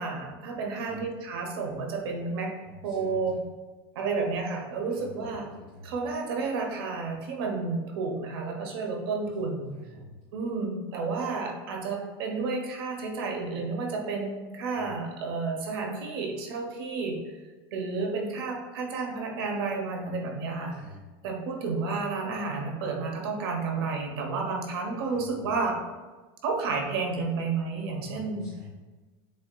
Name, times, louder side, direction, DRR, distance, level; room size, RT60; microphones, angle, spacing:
voice 1, 0.0-2.6 2.8-3.4 3.9-5.5 5.8-9.7 10.3-17.4 17.7-20.8 21.2-25.8 26.4-28.4, right 4 dB, 65° right, 2 dB, 1.0 m, -31 dB
voice 2, 2.6-3.4 4.9-6.1 9.2-10.2 14.7-14.9 20.7-21.0 25.0-25.6 28.0-28.7, left 2 dB, 15° left, -9 dB, 1.1 m, -48 dB
7.6 x 2.8 x 2.3 m, 1.3 s
supercardioid pair, 170°, 13 cm